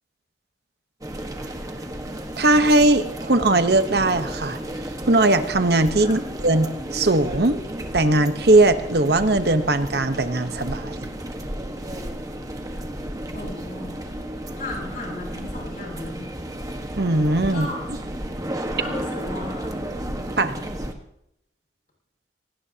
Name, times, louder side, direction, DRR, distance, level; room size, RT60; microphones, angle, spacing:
sound 1, 1.0-20.9, right 1 dB, 20° right, 1.4 m, -33 dB
voice 1, 2.4-4.6 5.1-7.6 7.9-11.1 17.0-17.7 20.4-20.5, right 2 dB, 60° right, 9 dB, 1.1 m, -19 dB
voice 2, 13.3-14.0 14.5-16.3 17.5-17.9 18.8-19.8, left 2 dB, 50° left, -1 dB, 6.9 m, -35 dB
26.0 x 18.0 x 2.9 m, 0.77 s
head